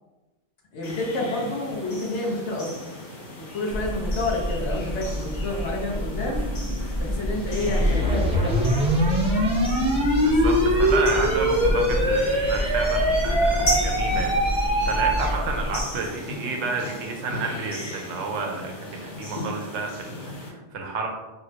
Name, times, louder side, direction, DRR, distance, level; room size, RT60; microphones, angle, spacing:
voice 1, 0.7-2.8 3.5-6.4 6.9-8.9, left 2 dB, 85° left, -2 dB, 1.0 m, -29 dB
sound 1, 0.8-20.5, left 1 dB, 60° left, 1.1 m, -37 dB
sound 2, 3.7-15.8, equal, 40° left, 0.9 m, -29 dB
sound 3, 7.6-15.4, equal, 10° right, 0.4 m, -22 dB
voice 2, 10.2-21.1, right 4 dB, 85° right, 2 dB, 0.9 m, -31 dB
3.6 x 2.0 x 2.8 m, 1.1 s
omnidirectional pair, 1.2 m